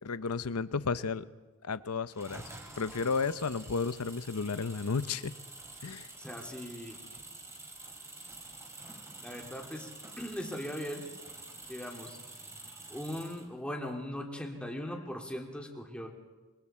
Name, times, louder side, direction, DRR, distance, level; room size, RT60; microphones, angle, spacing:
voice 1, 0.0-1.3 1.6-2.4 2.8-5.3 5.8-6.1, left 4 dB, 80° left, 14 dB, 0.7 m, -33 dB
sound 1, 2.1-13.5, right 2 dB, 15° right, 3.0 m, -48 dB
voice 2, 6.2-7.0 9.2-9.9 10.2-11.1 11.7-12.2 12.9-16.1, equal, 5° left, 1 dB, 2.9 m, -39 dB
26.0 x 24.0 x 4.4 m, 1.2 s
head